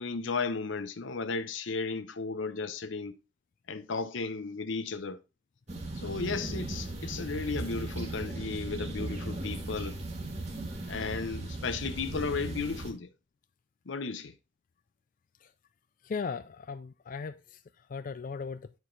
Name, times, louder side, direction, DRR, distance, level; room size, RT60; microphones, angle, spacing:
voice 1, 0.0-3.2 3.7-5.2 6.0-10.0 10.9-13.1 13.9-14.3, left 4 dB, 85° left, 0.7 m, -34 dB
sound 1, 5.7-12.9, right 2 dB, 35° right, 1.3 m, -37 dB
voice 2, 16.1-17.4 17.9-18.6, left 5 dB, 45° left, 0.3 m, -36 dB
8.6 x 4.6 x 3.8 m
head